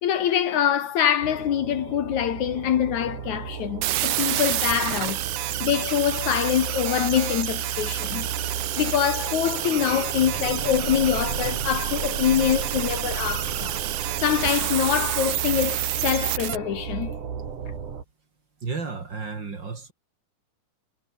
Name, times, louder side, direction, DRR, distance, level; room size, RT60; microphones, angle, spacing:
voice 1, 0.0-5.2 5.6-8.3 8.8-13.8 14.2-17.1, left 10 dB, 65° left, 2.7 m, -24 dB
sound 1, 1.2-18.0, right 6 dB, 70° right, 4.8 m, -34 dB
sound 2, 3.8-16.6, right 13 dB, 90° right, 3.0 m, -29 dB
voice 2, 18.6-19.9, right 4 dB, 35° right, 3.0 m, -32 dB
omnidirectional pair, 3.8 m